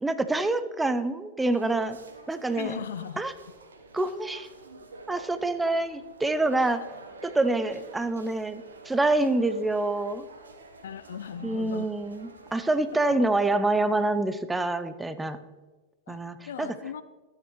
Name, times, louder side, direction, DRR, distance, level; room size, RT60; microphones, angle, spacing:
voice 1, 0.0-2.0 2.3-2.8 3.2-3.3 3.9-4.5 5.1-6.8 7.2-10.3 11.4-15.4 16.1-16.7, right 2 dB, 10° right, 12 dB, 0.6 m, -26 dB
sound 1, 1.5-12.9, right 3 dB, 85° right, 1.1 m, -49 dB
voice 2, 2.6-3.2 10.8-11.9 13.1-13.2 16.1-17.0, left 8 dB, 70° left, 14 dB, 0.5 m, -38 dB
13.0 x 9.3 x 3.1 m, 1.3 s
hypercardioid pair, 100°, 0 cm